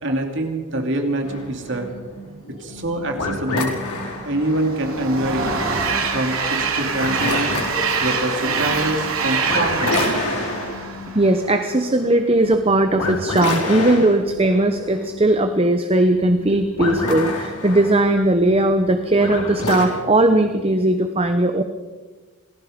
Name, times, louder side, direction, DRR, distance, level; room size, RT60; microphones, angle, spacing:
voice 1, 0.0-1.9 2.5-3.7 4.2-5.5 6.1-7.6 8.0-10.1 12.3-12.4, right 1 dB, 55° right, 4 dB, 2.8 m, -25 dB
sound 1, 1.2-19.8, left 2 dB, 85° left, 5.3 m, -29 dB
Train, 4.1-11.6, right 5 dB, 70° right, 3.3 m, -25 dB
voice 2, 11.1-21.6, right 1 dB, 25° right, 7 dB, 0.9 m, -18 dB
27.0 x 19.5 x 5.2 m, 1.4 s
head